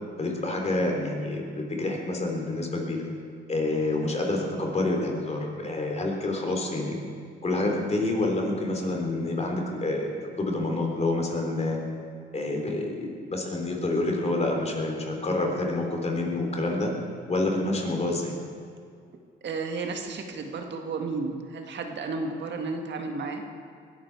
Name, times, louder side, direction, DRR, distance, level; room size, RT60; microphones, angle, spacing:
voice 1, 0.2-3.0 3.5-7.0 7.4-11.8 12.3-16.9 17.3-18.3, left 2 dB, 35° left, 1 dB, 3.4 m, -28 dB
voice 2, 19.4-23.4, right 4 dB, 65° right, 4 dB, 1.7 m, -32 dB
20.5 x 12.0 x 4.7 m, 2.3 s
cardioid pair, 90°, 20 cm